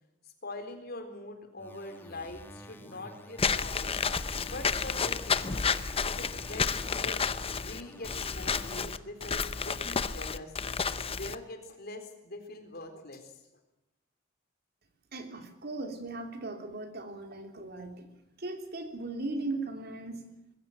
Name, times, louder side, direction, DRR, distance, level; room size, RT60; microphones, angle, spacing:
voice 1, 0.4-4.0 4.4-5.7 6.0-10.5 11.0-13.3, left 2 dB, 55° left, 6 dB, 4.0 m, -43 dB
sound 1, 1.6-9.0, equal, 10° left, 2.6 m, -50 dB
Walk footsteps / Squeak, 3.4-11.4, left 5 dB, 30° left, 0.8 m, -31 dB
voice 2, 15.1-18.1 18.4-20.2, right 2 dB, 55° right, 5 dB, 3.0 m, -38 dB
21.5 x 16.0 x 9.0 m, 0.90 s
head